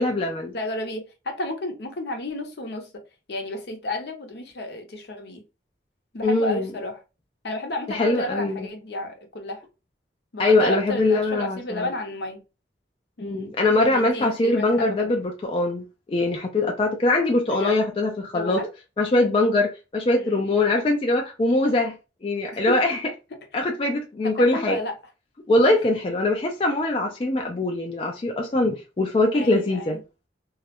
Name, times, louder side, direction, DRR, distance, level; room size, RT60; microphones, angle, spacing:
voice 1, 0.0-0.5 6.2-6.7 7.9-8.7 10.4-11.9 13.2-18.6 19.0-23.0 23.5-24.8 25.5-30.0, left 2 dB, 30° left, 0.3 m, -22 dB
voice 2, 0.5-2.9 3.3-5.4 6.1-7.0 7.4-9.6 10.3-12.4 13.2-13.5 13.9-15.1 17.4-17.8 18.3-18.7 20.1-20.5 22.5-22.8 24.2-24.9 29.3-30.0, left 1 dB, 70° left, 0.6 m, -32 dB
2.3 x 2.0 x 2.8 m
head